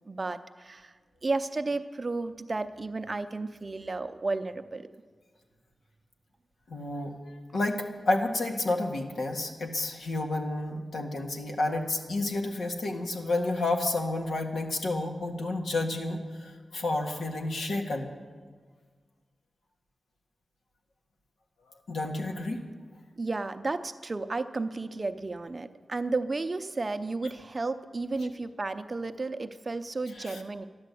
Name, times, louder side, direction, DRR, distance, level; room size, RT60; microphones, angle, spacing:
voice 1, 0.1-0.9 1.2-4.9 23.2-30.6, right 3 dB, 30° right, 9 dB, 0.6 m, -33 dB
voice 2, 6.7-18.1 21.9-22.6 30.1-30.4, left 2 dB, 80° left, 2 dB, 1.8 m, -30 dB
13.0 x 11.0 x 8.4 m, 1.5 s
wide cardioid pair, 160°, 0 cm